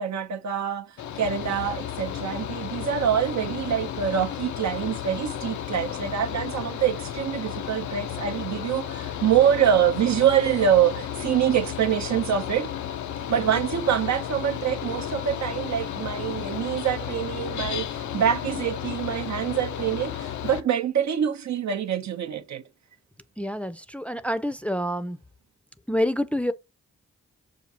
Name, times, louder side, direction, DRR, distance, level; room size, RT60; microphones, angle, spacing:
voice 1, 0.0-12.7 13.3-22.6, right 9 dB, 70° right, 0.6 m, -25 dB
Mechanical fan, 1.0-20.6, left 10 dB, 80° left, 0.5 m, -33 dB
voice 2, 23.4-25.2 25.9-26.5, equal, 5° left, 0.5 m, -27 dB
6.4 x 2.4 x 2.7 m
supercardioid pair, 45°, 29 cm